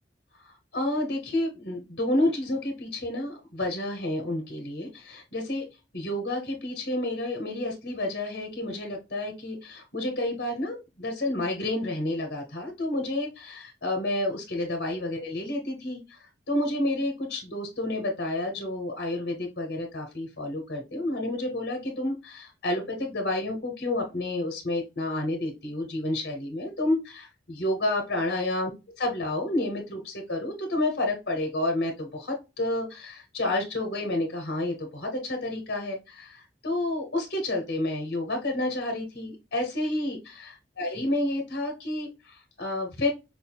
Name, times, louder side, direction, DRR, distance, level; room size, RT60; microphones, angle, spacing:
voice 1, 0.4-5.6 5.9-28.7 29.0-43.1, left 1 dB, 65° left, 1 dB, 1.2 m, -30 dB
5.1 x 2.7 x 2.2 m, 0.25 s
head